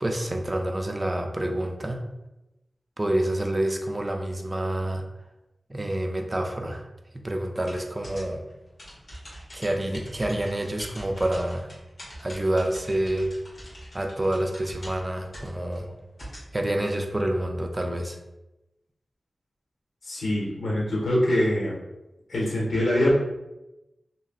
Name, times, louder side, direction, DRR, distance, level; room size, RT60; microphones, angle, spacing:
voice 1, 0.0-2.0 3.0-5.0 5.7-6.9 7.1-8.4 9.5-11.7 12.2-13.3 13.9-15.9 16.5-18.2, right 1 dB, 25° right, 3 dB, 0.4 m, -28 dB
sound 1, 7.7-16.5, equal, 50° left, 1.5 m, -43 dB
voice 2, 20.0-21.8 22.3-23.2, left 1 dB, 90° left, -5 dB, 0.9 m, -23 dB
3.0 x 2.6 x 2.4 m, 0.97 s
wide cardioid pair, 105°, 0 cm